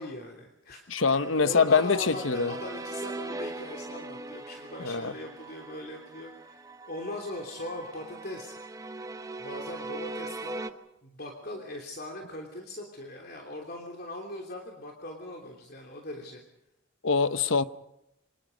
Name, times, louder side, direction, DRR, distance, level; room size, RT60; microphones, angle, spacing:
voice 1, 0.0-0.8 1.1-6.6 6.9-8.5 9.4-16.4, left 1 dB, 50° left, 3.2 m, -40 dB
voice 2, 0.9-2.5 4.8-5.1 17.0-17.6, left 5 dB, 80° left, 0.9 m, -24 dB
sound 1, 1.2-10.7, right 2 dB, 15° right, 0.9 m, -40 dB
28.5 x 25.5 x 5.3 m
head